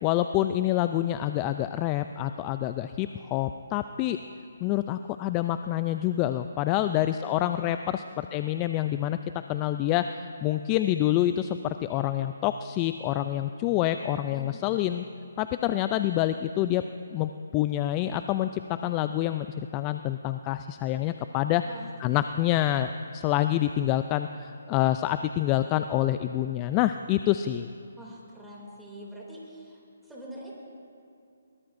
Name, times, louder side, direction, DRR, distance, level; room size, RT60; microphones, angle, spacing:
voice 1, 0.0-4.2 4.6-9.2 9.5-10.1 10.4-15.1 15.4-21.6 22.0-27.7, left 13 dB, 20° left, 10 dB, 0.3 m, -27 dB
voice 2, 6.8-8.0 14.3-14.8 21.6-22.5 28.0-30.5, equal, ahead, -5 dB, 2.7 m, -46 dB
22.5 x 21.5 x 2.6 m, 2.5 s
hypercardioid pair, 155°, 0 cm